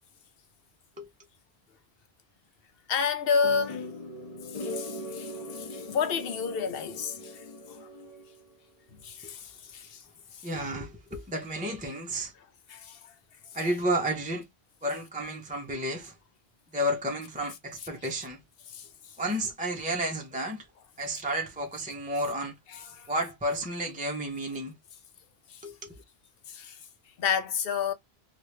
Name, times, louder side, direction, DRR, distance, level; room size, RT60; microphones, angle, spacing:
voice 1, 2.9-3.9 4.5-7.9 9.0-10.0 10.3-10.5 12.7-13.1 18.7-19.2 22.7-23.1 25.5-25.6 26.5-26.8 27.2-27.9, left 6 dB, 70° left, 0.9 m, -31 dB
sound 1, 3.4-8.5, left 1 dB, 35° left, 0.8 m, -40 dB
voice 2, 10.4-12.3 13.5-14.5 14.8-16.2 16.7-18.4 19.2-20.7 21.0-22.6 23.1-24.7 25.6-26.0, right 1 dB, 10° right, 0.5 m, -31 dB
2.9 x 2.5 x 3.1 m
omnidirectional pair, 1.0 m